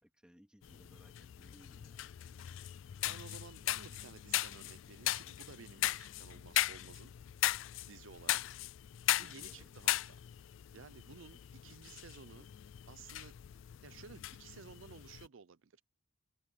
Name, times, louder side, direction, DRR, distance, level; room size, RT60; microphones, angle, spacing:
voice 1, 0.0-2.1 9.1-9.7, equal, 5° right, 2.4 m, -63 dB
sound 1, 0.6-15.3, left 14 dB, 70° left, 0.3 m, -38 dB
voice 2, 3.0-7.1 7.9-8.6 9.2-10.2 10.7-12.5 12.9-13.4 13.8-15.8, right 6 dB, 70° right, 0.5 m, -55 dB
head